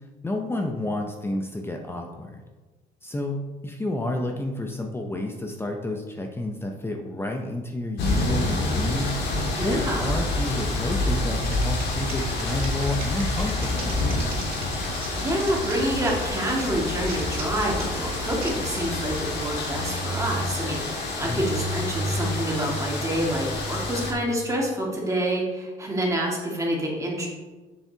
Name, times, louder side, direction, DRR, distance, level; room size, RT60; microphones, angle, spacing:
voice 1, 0.2-2.4 3.0-9.1 9.6-13.9 21.2-21.5, left 1 dB, 15° left, 2 dB, 0.7 m, -30 dB
sound 1, 8.0-24.1, left 2 dB, 75° left, 1.8 m, -28 dB
voice 2, 9.6-10.1 15.1-27.3, right 1 dB, 20° right, -3 dB, 2.0 m, -27 dB
Typing, 11.4-19.5, right 3 dB, 60° right, 2.4 m, -40 dB
7.3 x 7.1 x 2.8 m, 1.2 s
cardioid pair, 110°, 17 cm